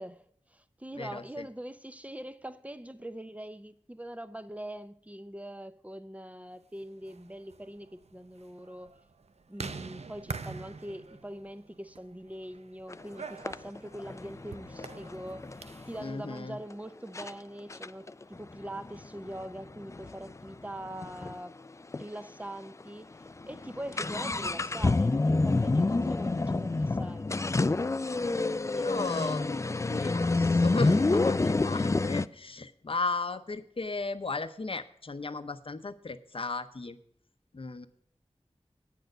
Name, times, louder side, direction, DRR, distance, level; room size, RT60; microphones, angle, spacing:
voice 1, 0.0-8.9 9.5-21.6 22.0-23.1 23.4-27.5, right 1 dB, 15° right, 0.6 m, -43 dB
voice 2, 1.0-1.5 16.0-16.6 28.7-37.0 37.5-37.9, left 3 dB, 55° left, 0.7 m, -35 dB
sound 1, 6.9-16.0, right 4 dB, 75° right, 0.6 m, -45 dB
sound 2, 12.9-13.0 13.5-16.1 16.7-16.8 17.2-17.3 17.7-21.4 21.7-21.8 21.9-22.1 22.7-22.8 23.1-32.3, left 3 dB, 25° left, 0.3 m, -28 dB
9.2 x 6.6 x 7.8 m
wide cardioid pair, 65°, 11 cm